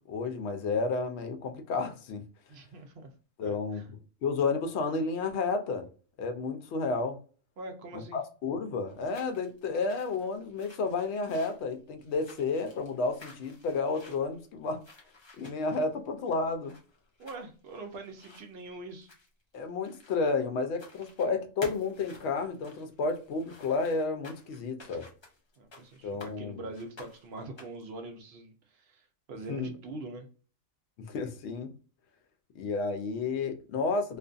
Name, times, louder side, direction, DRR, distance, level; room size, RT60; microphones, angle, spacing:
voice 1, 0.0-2.2 3.4-3.8 4.2-5.9 6.2-7.2 7.9-14.8 15.4-16.7 19.5-25.1 26.0-26.6 29.5-29.7 31.0-31.7 32.5-34.2, left 4 dB, 65° left, 0.8 m, -31 dB
voice 2, 2.5-3.1 3.4-3.9 7.6-8.2 17.2-19.1 25.6-30.3, right 2 dB, 65° right, 0.7 m, -43 dB
sound 1, 8.9-20.4 20.7-21.3 21.6-26.3 26.7-27.9, left 2 dB, 40° left, 0.4 m, -52 dB
2.5 x 2.4 x 2.3 m
omnidirectional pair, 1.4 m